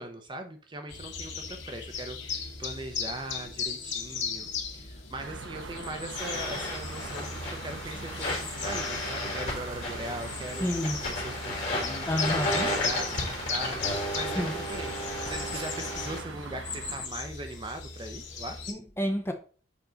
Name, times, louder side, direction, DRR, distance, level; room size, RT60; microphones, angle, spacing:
voice 1, 0.0-10.7 11.0-13.2 13.5-18.6, right 1 dB, 25° right, 0.6 m, -40 dB
sound 1, 0.9-18.7, left 5 dB, 70° left, 2.0 m, -38 dB
sound 2, 5.2-17.1, right 5 dB, 75° right, 0.6 m, -43 dB
sound 3, 6.1-16.2, left 1 dB, 35° left, 3.6 m, -34 dB
voice 2, 10.6-11.0 12.1-12.8 14.3-14.6 15.3-15.4 18.7-19.3, equal, 10° left, 0.8 m, -30 dB
7.1 x 4.6 x 3.9 m
head